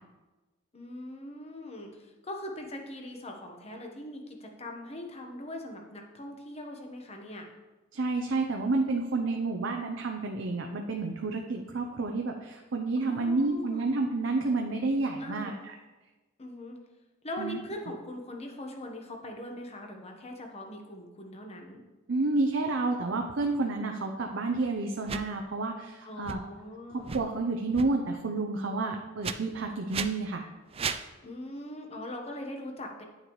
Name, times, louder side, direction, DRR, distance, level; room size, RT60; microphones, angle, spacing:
voice 1, 0.7-7.5 13.0-13.9 15.2-15.6 16.4-16.8 17.2-21.8 26.0-27.1 31.2-33.0, left 1 dB, 35° left, 2 dB, 1.1 m, -41 dB
voice 2, 7.9-15.7 17.4-17.6 22.1-26.4 27.1-30.4, right 3 dB, 70° right, 2 dB, 0.6 m, -30 dB
sound 1, 25.0-25.2 26.2-26.4 27.0-27.2 27.7-27.9 29.2-29.3 29.9-30.1 30.7-31.0, right 6 dB, 30° right, 0.4 m, -34 dB
9.5 x 6.5 x 3.1 m, 1.2 s
head